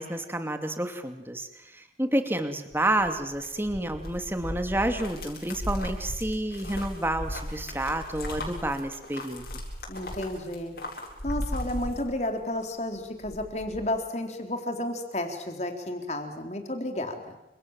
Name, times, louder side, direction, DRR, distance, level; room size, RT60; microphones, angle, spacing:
voice 1, 0.0-9.4, right 1 dB, 15° right, 7 dB, 2.6 m, -29 dB
sound 1, 2.7-12.6 13.0-13.9, left 1 dB, 60° left, 7.6 m, -37 dB
voice 2, 9.9-10.8 11.2-17.4, left 1 dB, 40° left, 5 dB, 4.0 m, -32 dB
29.5 x 26.5 x 7.6 m, 0.85 s
head